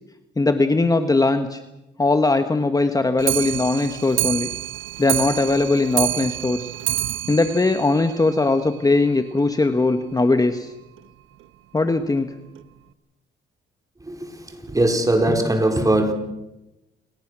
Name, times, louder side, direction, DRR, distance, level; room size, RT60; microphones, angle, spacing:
voice 1, 0.4-1.6 2.0-4.5 5.0-6.7 7.3-10.7 11.7-12.3, left 3 dB, 20° left, 1.4 m, -20 dB
Clock, 3.2-8.7 9.0-9.1 9.4-9.5 9.8-9.9 10.2-10.3 11.0-11.1 11.8-11.9 12.6-12.7, right 14 dB, 85° right, 1.1 m, -27 dB
voice 2, 14.6-16.1, right 1 dB, 15° right, 4.2 m, -20 dB
28.0 x 20.0 x 6.3 m
cardioid pair, 90°, 20 cm